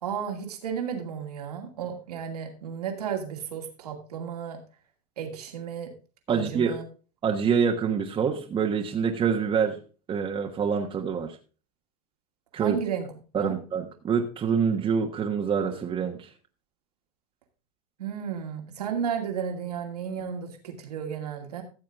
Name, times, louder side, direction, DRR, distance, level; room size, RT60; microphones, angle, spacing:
voice 1, 0.0-4.6 5.2-5.9 6.3-6.8 12.5-13.1 13.4-13.6 18.0-21.6, right 7 dB, 90° right, 3 dB, 2.5 m, -33 dB
voice 2, 6.3-6.7 7.2-9.8 10.1-11.4 12.5-12.8 13.3-16.3, right 6 dB, 25° right, 1 dB, 1.3 m, -26 dB
14.0 x 7.4 x 3.6 m, 0.36 s
hypercardioid pair, 110°, 19 cm